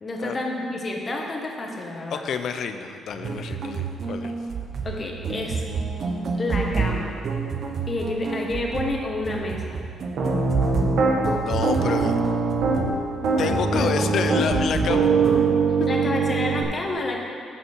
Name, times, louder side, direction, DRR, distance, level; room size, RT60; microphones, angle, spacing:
voice 1, 0.0-2.2 4.8-5.6 6.4-7.1 7.9-9.8 13.7-13.9 15.9-17.2, left 2 dB, 35° left, 0 dB, 1.5 m, -29 dB
voice 2, 2.1-4.3 11.4-12.2 13.4-15.0 15.8-16.1, left 6 dB, 65° left, 8 dB, 0.6 m, -28 dB
sound 1, 3.1-15.5, right 5 dB, 55° right, 1.0 m, -29 dB
Piano, 10.2-11.1 11.6-12.9 13.2-16.6, right 4 dB, 70° right, 1.5 m, -22 dB
13.0 x 5.4 x 4.7 m, 2.4 s
cardioid pair, 90°, 0 cm